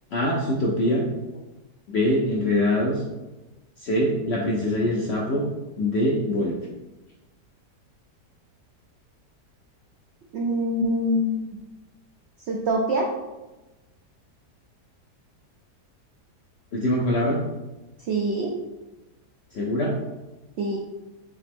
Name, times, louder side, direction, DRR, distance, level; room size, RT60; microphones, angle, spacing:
voice 1, 0.1-1.0 1.9-3.0 3.8-5.4 5.8-6.6 16.7-17.4 19.5-19.9, left 1 dB, 75° left, -2 dB, 0.6 m, -23 dB
voice 2, 10.3-11.6 12.5-13.1 18.1-18.5 20.6-20.8, equal, 85° right, -1 dB, 0.5 m, -24 dB
4.9 x 2.9 x 3.5 m, 1.1 s
omnidirectional pair, 1.8 m